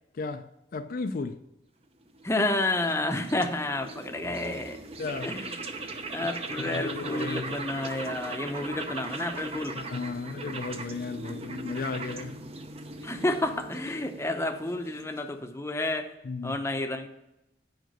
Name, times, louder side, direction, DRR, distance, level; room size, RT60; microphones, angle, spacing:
voice 1, 0.1-1.4 5.0-5.4 6.6-7.7 9.8-12.4 16.2-16.6, left 4 dB, 50° left, 0.4 m, -35 dB
sound 1, 2.0-15.4, right 3 dB, 35° right, 0.7 m, -39 dB
voice 2, 2.2-4.8 5.2-5.5 6.1-9.8 13.0-16.1 16.4-17.1, left 2 dB, 15° left, 0.7 m, -30 dB
9.2 x 5.0 x 6.5 m
head